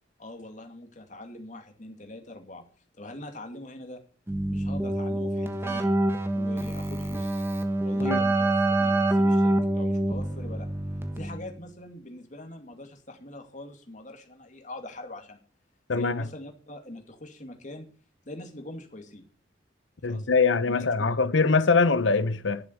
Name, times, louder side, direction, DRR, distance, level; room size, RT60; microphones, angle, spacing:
voice 1, 0.2-2.7 2.9-4.0 4.5-5.9 6.3-7.4 7.8-10.7 11.2-15.4 15.9-17.9 18.3-19.3 20.0-20.3 20.7-21.2, left 1 dB, 40° left, 2.3 m, -43 dB
Keyboard (musical), 4.3-11.6, right 1 dB, 15° right, 1.4 m, -26 dB
voice 2, 15.9-16.2 20.0-22.6, left 4 dB, 80° left, 0.9 m, -23 dB
11.5 x 7.1 x 8.1 m
head